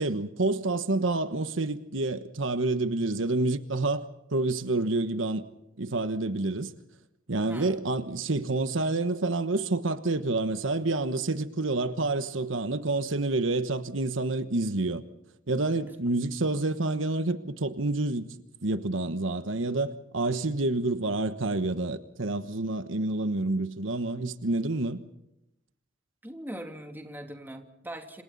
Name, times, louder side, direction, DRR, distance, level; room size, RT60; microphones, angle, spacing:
voice 1, 0.0-4.0 4.3-5.4 5.8-6.7 7.3-15.0 15.5-18.3 18.6-25.0, right 2 dB, 80° right, 1.2 m, -28 dB
voice 2, 7.5-7.8 15.7-16.0 26.2-28.2, right 1 dB, 10° right, 2.9 m, -41 dB
28.0 x 27.0 x 4.1 m
head